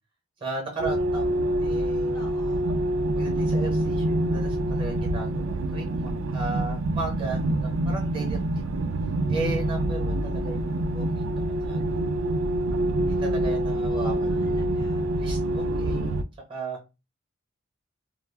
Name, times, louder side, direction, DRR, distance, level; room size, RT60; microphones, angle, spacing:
voice 1, 0.4-2.3 3.1-8.8 9.3-11.3 11.6-11.8 13.0-14.3 15.1-16.8, right 3 dB, 25° right, 1 dB, 0.9 m, -36 dB
sound 1, 0.8-16.2, right 1 dB, 70° right, 0.3 m, -26 dB
voice 2, 2.1-2.7 13.1-15.1, left 3 dB, 20° left, 1 dB, 0.7 m, -50 dB
2.2 x 2.0 x 3.2 m, 0.27 s
head